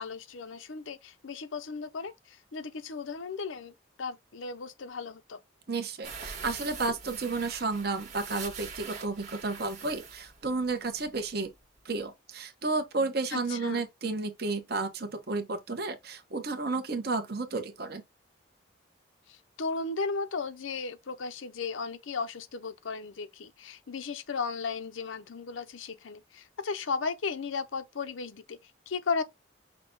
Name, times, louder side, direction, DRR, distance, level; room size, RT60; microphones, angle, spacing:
voice 1, 0.0-5.4 13.3-13.9 19.3-29.2, left 4 dB, 80° left, 0.6 m, -35 dB
voice 2, 5.7-11.5 11.8-18.0, right 3 dB, 55° right, 0.9 m, -32 dB
sound 1, 6.0-11.3 11.6-11.7 12.0-12.1, right 5 dB, 35° right, 1.4 m, -43 dB
5.9 x 2.2 x 3.8 m
head